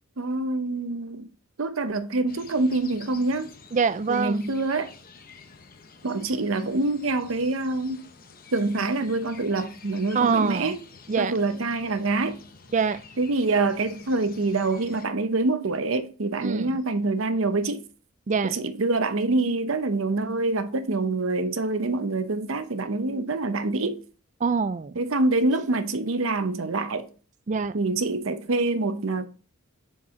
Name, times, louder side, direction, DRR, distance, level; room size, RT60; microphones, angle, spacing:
voice 1, 0.2-1.3 1.6-3.5 4.1-4.9 6.0-8.0 8.5-10.8 11.2-12.4 13.2-17.8 18.5-24.0 25.0-27.1 27.7-29.3, right 2 dB, 70° right, 0.7 m, -26 dB
sound 1, 2.3-15.1, left 5 dB, 40° left, 0.8 m, -49 dB
voice 2, 3.7-4.5 10.1-10.8 11.1-11.3 12.7-13.0 16.4-16.8 18.3-18.5 24.4-25.0 27.5-27.8, right 5 dB, 35° right, 0.3 m, -25 dB
7.2 x 4.7 x 3.7 m
head